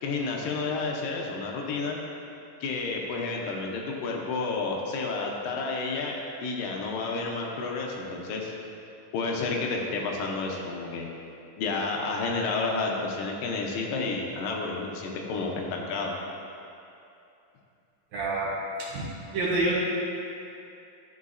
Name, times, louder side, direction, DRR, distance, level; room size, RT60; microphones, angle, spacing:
voice 1, 0.0-2.0 2.6-8.5 9.1-11.1 11.6-16.1, left 3 dB, 80° left, 0 dB, 2.3 m, -30 dB
voice 2, 18.1-18.5 18.8-19.1 19.3-19.8, right 2 dB, 65° right, -6 dB, 2.1 m, -27 dB
12.5 x 4.7 x 2.5 m, 2.7 s
omnidirectional pair, 4.0 m